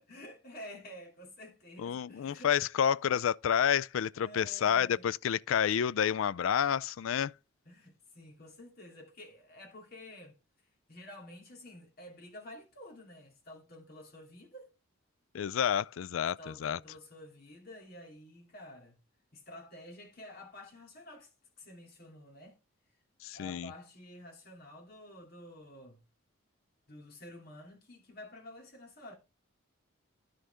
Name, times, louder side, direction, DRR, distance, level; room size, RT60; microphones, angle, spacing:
voice 1, 0.0-2.5 4.1-5.1 7.6-10.4 10.9-14.7 16.4-19.0 19.3-21.3 21.6-22.6 23.3-26.0 26.9-29.1, left 1 dB, 45° left, 2.8 m, -50 dB
voice 2, 1.8-7.3 15.3-16.8 23.2-23.7, left 8 dB, 70° left, 0.3 m, -29 dB
11.0 x 6.4 x 3.5 m
head